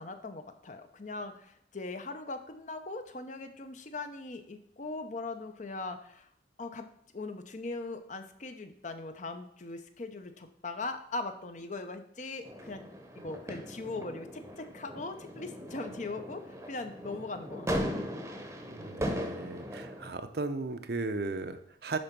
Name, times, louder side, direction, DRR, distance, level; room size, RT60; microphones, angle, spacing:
voice 1, 0.0-6.3 6.6-6.9 7.1-12.8 13.2-18.0, left 3 dB, 40° left, 8 dB, 0.7 m, -40 dB
sound 1, 12.4-20.1, equal, 15° right, 0.9 m, -38 dB
voice 2, 18.7-22.0, right 3 dB, 55° right, 9 dB, 0.7 m, -36 dB
10.5 x 3.9 x 5.9 m, 0.69 s
head